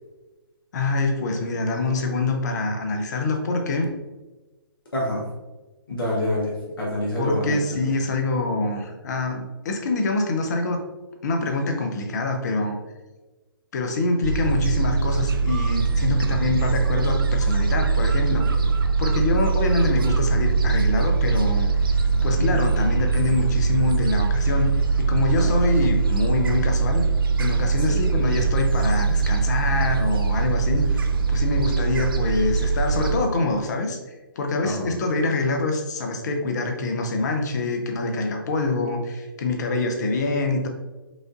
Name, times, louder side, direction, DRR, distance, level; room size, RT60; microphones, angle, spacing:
voice 1, 0.7-3.9 7.2-10.8 11.2-12.8 13.7-18.5 19.0-24.7 25.0-27.0 27.4-31.0 31.3-40.7, left 2 dB, 45° left, 4 dB, 0.7 m, -25 dB
voice 2, 4.9-5.2 5.9-7.9 18.6-18.7 22.4-22.7 25.4-25.7 27.9-28.0 34.6-35.0, left 1 dB, 65° left, -4 dB, 1.1 m, -27 dB
Gull seagull, 14.2-33.2, right 4 dB, 65° right, 0.4 m, -22 dB
5.0 x 2.5 x 2.5 m, 1.2 s
figure-of-eight pair, 130°, 12 cm